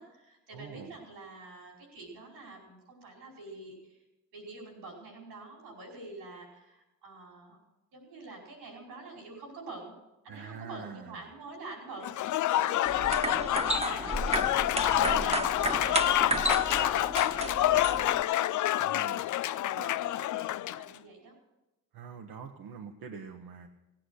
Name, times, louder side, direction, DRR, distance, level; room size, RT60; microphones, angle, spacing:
voice 1, 0.0-4.0 4.3-7.6 7.9-9.9 10.2-14.4 14.8-18.1 18.5-18.6 19.5-21.3, right 3 dB, 90° right, -1 dB, 5.0 m, -46 dB
voice 2, 0.5-0.9 10.3-11.1 14.7-15.5 18.8-19.3 19.8-19.9 21.9-23.7, right 6 dB, 70° right, 3 dB, 1.2 m, -45 dB
Applause / Crowd, 12.0-20.9, left 13 dB, 55° left, 0.5 m, -28 dB
sound 1, 12.9-18.2, right 2 dB, 15° right, 1.3 m, -33 dB
17.5 x 9.0 x 6.4 m, 1.0 s
supercardioid pair, 55°, 38 cm